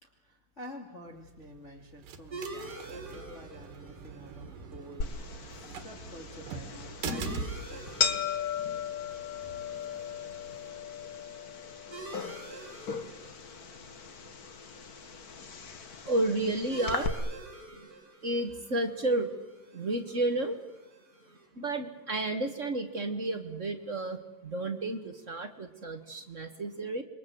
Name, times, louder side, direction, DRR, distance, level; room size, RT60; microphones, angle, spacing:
voice 1, 0.0-8.2, left 1 dB, 20° left, 1 dB, 2.5 m, -49 dB
sound 1, 1.1-10.7, right 5 dB, 75° right, 3.3 m, -44 dB
sound 2, 2.3-21.5, right 2 dB, 25° right, 8.4 m, -49 dB
sound 3, 5.0-17.1, left 6 dB, 85° left, 0.8 m, -37 dB
voice 2, 16.0-17.2 17.7-17.9 18.2-19.4 19.7-20.6 21.5-27.0, right 2 dB, 50° right, 5 dB, 0.9 m, -31 dB
28.0 x 23.0 x 7.8 m, 0.95 s
omnidirectional pair, 3.9 m